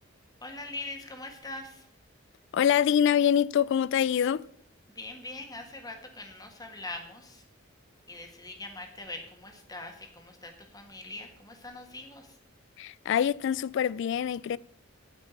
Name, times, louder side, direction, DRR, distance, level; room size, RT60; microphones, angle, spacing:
voice 1, 0.4-1.8 4.9-7.4 8.1-12.4, left 2 dB, 20° left, 1.6 m, -42 dB
voice 2, 2.5-4.4 12.8-14.6, left 9 dB, 65° left, 0.3 m, -25 dB
9.0 x 5.8 x 8.2 m
head